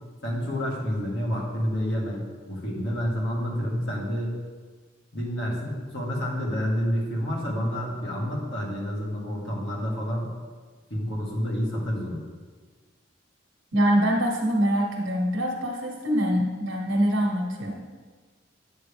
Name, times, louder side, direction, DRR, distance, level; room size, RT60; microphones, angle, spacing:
voice 1, 0.2-4.4 5.1-10.3 10.9-12.2, equal, 60° left, -3 dB, 1.8 m, -29 dB
voice 2, 13.7-17.8, equal, 75° right, -1 dB, 1.0 m, -24 dB
8.3 x 7.4 x 3.4 m, 1.4 s
head